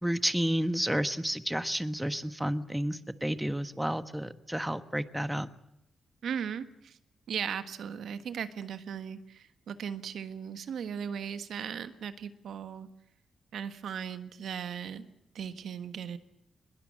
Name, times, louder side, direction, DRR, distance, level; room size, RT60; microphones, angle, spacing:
voice 1, 0.0-5.5, equal, 5° right, 12 dB, 1.3 m, -31 dB
voice 2, 6.2-7.0 7.3-12.9 13.5-15.0 15.3-16.2, right 7 dB, 80° right, 11 dB, 1.5 m, -37 dB
21.5 x 19.0 x 8.8 m, 0.84 s
cardioid pair, 70°, 0 cm